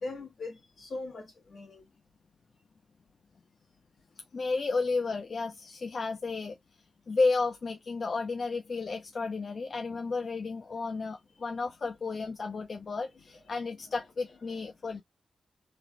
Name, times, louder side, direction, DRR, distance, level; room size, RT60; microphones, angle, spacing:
voice 1, 0.0-1.8 13.0-14.0 14.3-14.7, left 2 dB, 60° left, 1.3 m, -42 dB
voice 2, 4.3-6.6 7.1-15.0, left 3 dB, 45° left, 0.4 m, -32 dB
3.2 x 2.4 x 2.2 m
wide cardioid pair, 170°, 0 cm